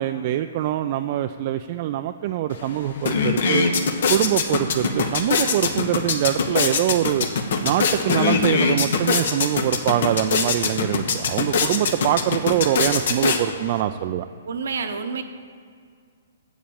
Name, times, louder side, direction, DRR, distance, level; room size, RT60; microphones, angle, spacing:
voice 1, 0.0-3.7 4.1-7.3 7.6-14.3, right 12 dB, 45° right, 8 dB, 0.3 m, -24 dB
sound 1, 2.5-2.6 2.9-13.8, left 5 dB, 65° left, 0.9 m, -23 dB
voice 2, 14.5-15.2, right 5 dB, 70° right, 7 dB, 0.9 m, -28 dB
7.4 x 7.2 x 7.0 m, 2.1 s
hypercardioid pair, 125°, 0 cm